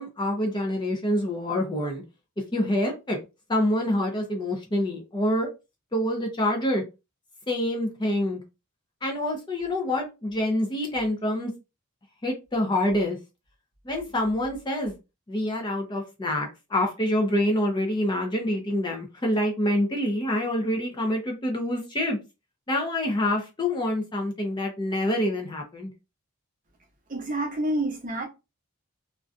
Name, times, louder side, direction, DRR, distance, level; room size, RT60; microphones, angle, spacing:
voice 1, 0.0-2.0 2.5-3.2 3.5-5.5 5.9-6.8 7.5-8.4 9.0-11.5 12.2-13.2 13.9-14.9 15.3-22.2 22.7-25.9, left 1 dB, 20° left, 0.5 m, -26 dB
voice 2, 27.1-28.3, right 1 dB, 35° right, 0.6 m, -28 dB
2.5 x 2.2 x 2.4 m
head